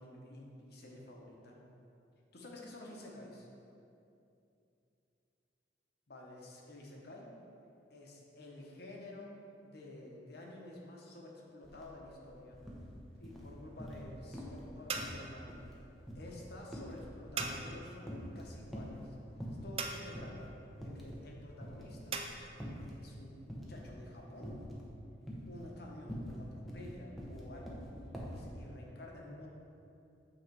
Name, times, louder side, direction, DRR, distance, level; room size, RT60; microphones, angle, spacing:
voice 1, 0.0-1.6 2.3-3.5 6.1-7.3 7.9-9.3 9.6-12.6 13.2-15.6 16.1-19.1 19.6-22.2 22.8-24.6 25.5-29.5, left 1 dB, 55° left, -1 dB, 1.0 m, -51 dB
sound 1, 11.6-11.8 12.1-12.9 13.2-14.1 14.3-14.7 15.0-17.8 18.0-19.0 19.4-19.8 20.2-20.3 20.8-21.3 21.6-23.0 23.5-23.9 24.4-24.9 25.2-28.5, equal, ahead, 0.7 m, -45 dB
sound 2, 12.6-22.3, right 4 dB, 30° right, 0.3 m, -45 dB
8.1 x 3.2 x 4.6 m, 2.7 s
head